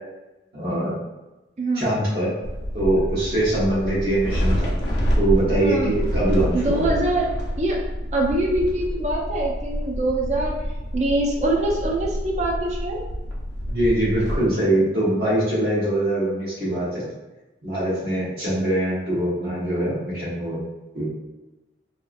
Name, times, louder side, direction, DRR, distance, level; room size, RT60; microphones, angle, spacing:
voice 1, 0.5-0.9 1.7-2.3 2.7-4.7 5.2-6.9 13.6-17.0 17.6-20.6 20.9-21.1, right 1 dB, 60° right, -9 dB, 1.0 m, -23 dB
voice 2, 1.6-1.9 5.6-5.9 6.3-7.3 7.6-7.8 8.1-10.5 10.9-13.0, right 1 dB, 40° right, -1 dB, 0.5 m, -24 dB
sound 1, 2.4-14.4, equal, 85° left, 0.6 m, -27 dB
2.8 x 2.3 x 2.5 m, 1.0 s
head